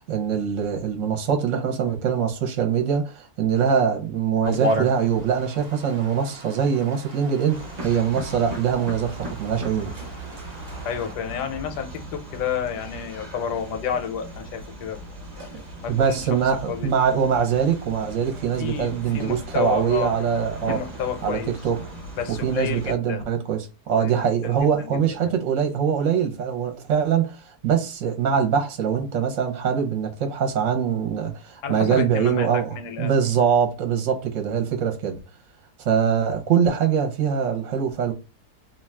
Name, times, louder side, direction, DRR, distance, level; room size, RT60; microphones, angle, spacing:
voice 1, 0.1-9.9 15.5-15.6 15.9-20.8 21.2-21.8 22.3-35.2 35.8-38.1, right 7 dB, 60° right, 0.9 m, -23 dB
sound 1, 4.4-11.1, right 1 dB, 90° right, 0.3 m, -33 dB
sound 2, 7.5-23.0, right 1 dB, 40° right, 0.6 m, -38 dB
voice 2, 10.8-15.0 15.4-16.4 16.7-16.9 18.6-20.2 20.7-21.5 22.2-23.3 23.9-24.5 24.8-25.3 31.6-33.1, left 7 dB, 85° left, 1.3 m, -30 dB
2.7 x 2.3 x 3.2 m
omnidirectional pair, 1.7 m